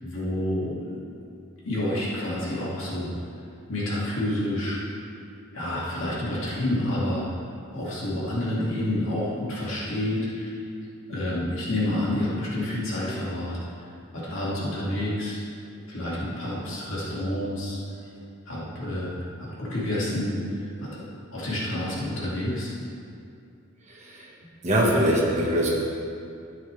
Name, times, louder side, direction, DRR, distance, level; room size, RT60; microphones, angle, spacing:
voice 1, 0.0-1.0 1.7-3.1 3.7-4.8 5.5-7.2 7.7-10.5 11.1-13.6 14.1-15.4 15.9-17.8 18.5-21.0 21.3-22.7, left 1 dB, 65° left, -7 dB, 2.5 m, -29 dB
voice 2, 23.9-24.3 24.6-25.7, right 1 dB, 35° right, -3 dB, 1.6 m, -22 dB
12.5 x 9.4 x 3.5 m, 2.5 s
head